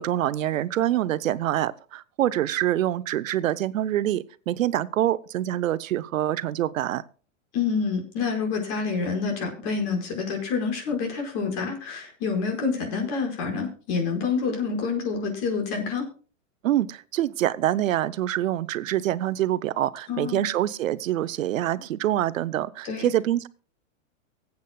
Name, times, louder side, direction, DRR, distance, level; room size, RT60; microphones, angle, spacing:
voice 1, 0.0-7.0 16.6-23.5, right 13 dB, 80° right, 0.8 m, -25 dB
voice 2, 7.5-16.1 20.1-20.5 22.8-23.1, left 5 dB, 45° left, 5.2 m, -27 dB
24.0 x 8.3 x 2.3 m
hypercardioid pair, 135°, 39 cm